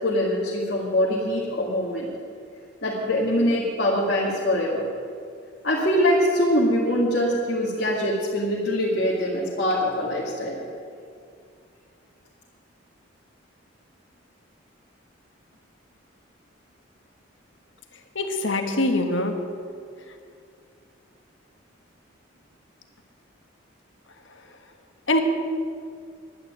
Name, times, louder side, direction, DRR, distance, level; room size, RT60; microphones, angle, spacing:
voice 1, 0.0-2.1 2.8-4.8 5.6-10.6, equal, 50° left, -6 dB, 2.1 m, -23 dB
voice 2, 18.1-19.3 25.1-25.2, left 2 dB, 70° left, 5 dB, 1.5 m, -23 dB
11.0 x 9.6 x 9.3 m, 2.3 s
head